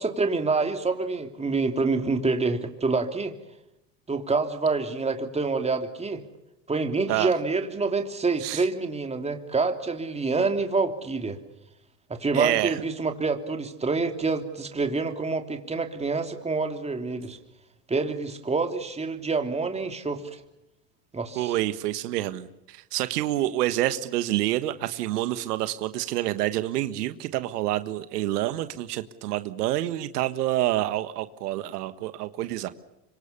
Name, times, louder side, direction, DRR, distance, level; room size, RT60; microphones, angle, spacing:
voice 1, 0.0-3.3 4.1-6.2 6.7-11.4 12.1-17.4 17.9-20.4 21.1-21.5, right 4 dB, 15° right, 6 dB, 3.0 m, -27 dB
voice 2, 12.3-12.8 21.4-32.7, right 14 dB, 80° right, 11 dB, 1.6 m, -27 dB
25.5 x 24.5 x 7.0 m, 0.90 s
supercardioid pair, 110°, 46 cm